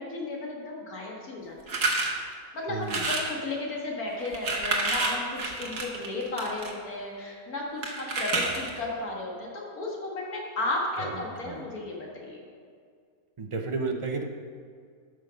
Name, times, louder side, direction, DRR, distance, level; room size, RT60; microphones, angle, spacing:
voice 1, 0.0-1.8 2.5-12.4, left 2 dB, 70° left, -2 dB, 2.3 m, -34 dB
sound 1, 1.7-2.1 2.8-3.3 4.2-6.7 7.8-8.8, right 3 dB, 60° right, 1.7 m, -29 dB
voice 2, 2.7-3.1 11.0-11.7 13.4-14.2, right 4 dB, 30° right, 3 dB, 0.6 m, -33 dB
12.5 x 6.3 x 5.2 m, 2.1 s
omnidirectional pair, 1.6 m